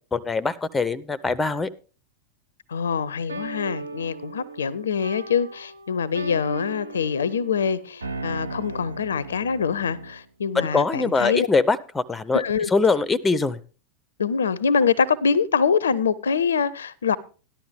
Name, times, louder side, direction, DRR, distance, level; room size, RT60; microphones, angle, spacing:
voice 1, 0.1-1.7 10.5-13.6, left 4 dB, 10° left, 0.5 m, -23 dB
voice 2, 2.7-11.5 12.3-12.7 14.2-17.2, left 6 dB, 70° left, 0.4 m, -24 dB
sound 1, 3.3-10.3, right 3 dB, 75° right, 0.5 m, -37 dB
13.0 x 11.5 x 3.4 m
figure-of-eight pair, 90°, 0 cm